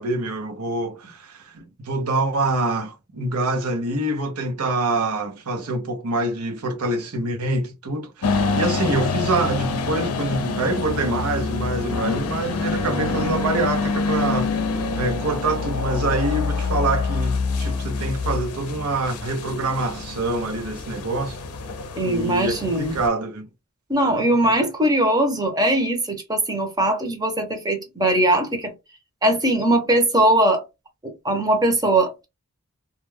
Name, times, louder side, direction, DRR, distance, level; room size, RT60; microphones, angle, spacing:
voice 1, 0.0-14.6 15.0-21.4 22.0-23.5 24.4-24.7, right 2 dB, 75° right, 0.7 m, -25 dB
sound 1, 8.2-23.1, left 4 dB, 75° left, 0.5 m, -26 dB
voice 2, 22.0-22.9 23.9-28.7 29.2-30.6 31.0-32.2, right 1 dB, 15° right, 0.7 m, -20 dB
2.3 x 2.2 x 3.2 m
head